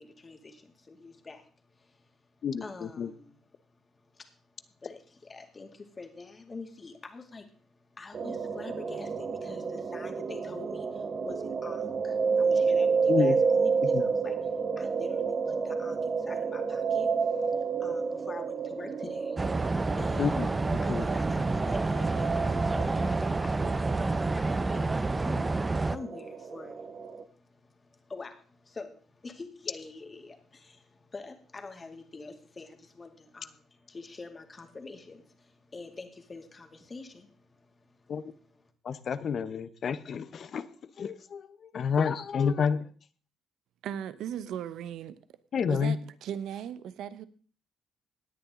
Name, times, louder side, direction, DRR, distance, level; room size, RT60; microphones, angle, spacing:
voice 1, 0.0-2.2 2.6-3.4 3.9-20.4 20.8-38.6, left 3 dB, 30° left, 5 dB, 2.4 m, -46 dB
voice 2, 2.4-3.1 13.1-13.3 13.9-14.0 20.2-21.1 38.1-38.2 38.8-40.7 41.0-42.9 45.5-45.9, left 6 dB, 55° left, 14 dB, 0.9 m, -29 dB
sound 1, 8.1-27.2, right 5 dB, 45° right, 1.3 m, -30 dB
sound 2, 19.4-26.0, right 3 dB, 20° right, 0.6 m, -29 dB
voice 3, 43.8-45.2 45.7-47.3, right 9 dB, 80° right, 15 dB, 0.9 m, -37 dB
17.5 x 10.0 x 3.8 m, 0.40 s
cardioid pair, 90°, 0 cm